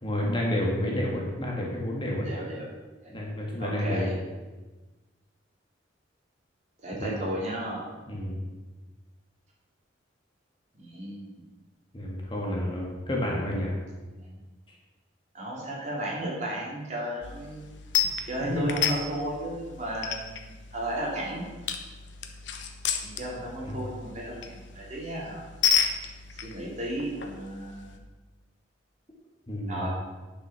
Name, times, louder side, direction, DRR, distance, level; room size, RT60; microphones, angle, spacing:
voice 1, 0.0-2.3 3.1-4.1 7.0-7.2 8.1-8.4 11.9-13.8 18.5-18.6 23.6-23.7 29.5-29.9, left 1 dB, 25° left, -2 dB, 1.9 m, -30 dB
voice 2, 2.2-2.7 3.0-3.1 3.6-4.1 6.8-7.9 10.8-11.4 14.1-14.4 15.3-17.6 18.3-21.5 23.0-25.4 26.3-28.0 29.7-29.9, right 1 dB, 40° right, -4 dB, 2.9 m, -34 dB
sound 1, 17.2-28.0, left 7 dB, 75° left, 1.0 m, -32 dB
9.5 x 7.2 x 5.9 m, 1.2 s
head